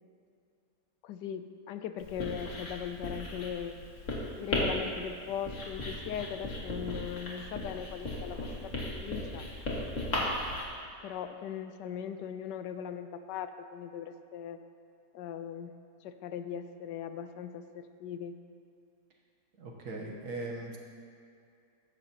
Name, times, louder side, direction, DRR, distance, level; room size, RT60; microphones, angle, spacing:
voice 1, 1.0-3.8 4.4-9.5 11.0-14.6 15.1-15.7 16.0-18.4, left 8 dB, 80° left, 9 dB, 1.2 m, -39 dB
Writing, 2.0-10.6, left 1 dB, 45° left, 2.0 m, -36 dB
voice 2, 19.6-20.8, right 2 dB, 65° right, 0 dB, 1.6 m, -39 dB
14.5 x 10.5 x 2.9 m, 2.4 s
omnidirectional pair, 1.9 m